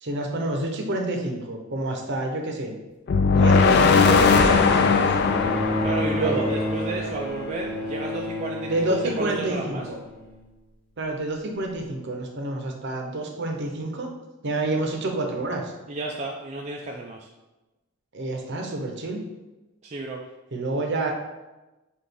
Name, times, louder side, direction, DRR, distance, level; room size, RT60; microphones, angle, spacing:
voice 1, 0.0-2.7 3.3-5.1 6.1-6.5 8.7-10.0 11.0-14.1 14.4-15.7 18.1-19.2 20.5-21.1, right 2 dB, 55° right, 2 dB, 0.7 m, -28 dB
sound 1, 3.1-7.2, left 4 dB, 50° left, 0.4 m, -19 dB
Bowed string instrument, 5.2-10.7 11.8-11.9, left 1 dB, 5° left, 0.7 m, -31 dB
voice 2, 5.8-9.9 15.9-17.3 19.8-20.2, right 2 dB, 30° right, -1 dB, 0.3 m, -32 dB
5.9 x 2.4 x 3.4 m, 1.1 s
head